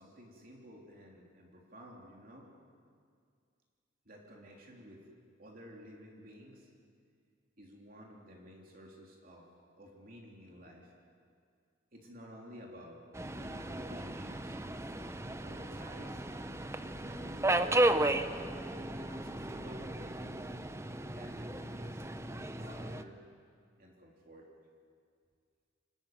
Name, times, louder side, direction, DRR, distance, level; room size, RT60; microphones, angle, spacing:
voice 1, 0.0-2.5 4.0-5.0 5.4-6.7 7.6-9.5 9.8-10.9 11.9-13.0 13.3-14.6 15.4-16.3 16.8-17.6 18.8-20.5 21.1-22.0 22.5-23.2 23.8-24.5, equal, 50° right, -1 dB, 3.3 m, -52 dB
Subway metro underground, 13.1-23.0, right 1 dB, 15° right, 0.7 m, -34 dB
26.5 x 13.5 x 9.4 m, 2.2 s
head